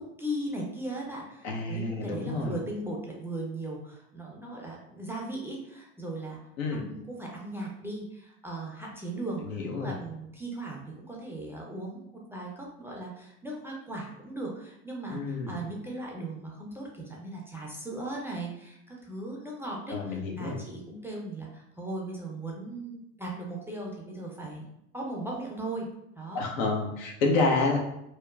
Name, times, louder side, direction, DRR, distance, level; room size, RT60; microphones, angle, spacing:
voice 1, 0.0-6.4 6.7-24.7 24.9-25.9 26.2-26.5, right 2 dB, 5° right, -3 dB, 0.4 m, -38 dB
voice 2, 1.4-2.5 6.6-6.8 9.4-10.0 15.1-15.6 19.9-20.6 26.3-27.8, left 3 dB, 75° left, 0 dB, 0.7 m, -29 dB
2.9 x 2.0 x 2.3 m, 0.82 s
hypercardioid pair, 70°, 39 cm